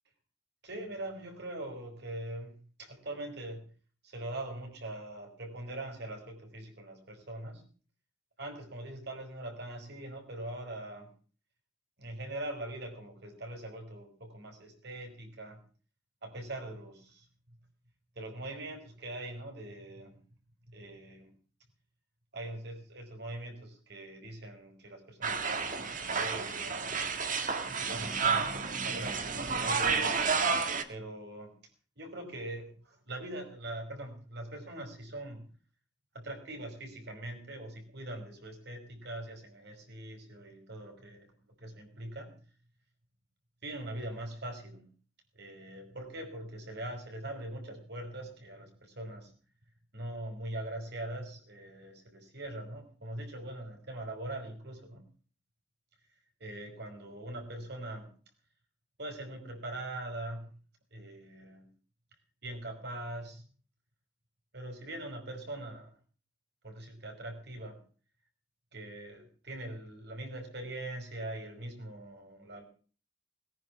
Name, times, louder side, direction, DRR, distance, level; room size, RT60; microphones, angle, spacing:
voice 1, 0.6-3.7 4.0-7.6 8.4-11.1 12.0-15.6 16.2-17.3 18.2-20.2 20.7-21.3 22.3-26.9 27.6-30.3 30.9-31.5 32.0-35.5 36.1-41.3 41.6-42.3 43.6-44.9 45.3-49.3 49.9-55.1 56.4-58.1 59.0-60.5 60.9-61.7 62.4-63.4 64.5-65.9 66.6-67.8 68.7-72.6, right 1 dB, 60° right, 5 dB, 5.4 m, -42 dB
sound 1, 25.2-30.8, right 5 dB, 45° right, 1.9 m, -31 dB
20.0 x 10.0 x 7.2 m, 0.42 s
head